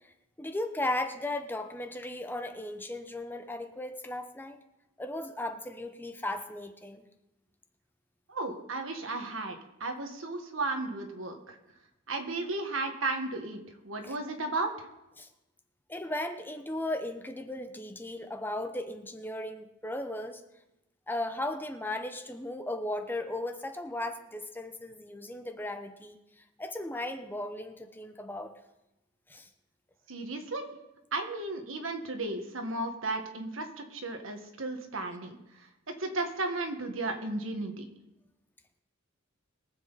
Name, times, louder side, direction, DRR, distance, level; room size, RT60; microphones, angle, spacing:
voice 1, 0.4-4.6 5.0-7.0 14.0-14.2 15.2-15.3 15.9-20.4 21.1-26.2 26.6-28.5 29.3-29.5, left 1 dB, 10° left, 7 dB, 0.8 m, -36 dB
voice 2, 8.3-11.6 12.1-14.7 30.1-30.7 31.1-35.3 36.0-37.8, right 2 dB, 70° right, 5 dB, 1.7 m, -34 dB
22.5 x 7.7 x 4.1 m, 0.92 s
head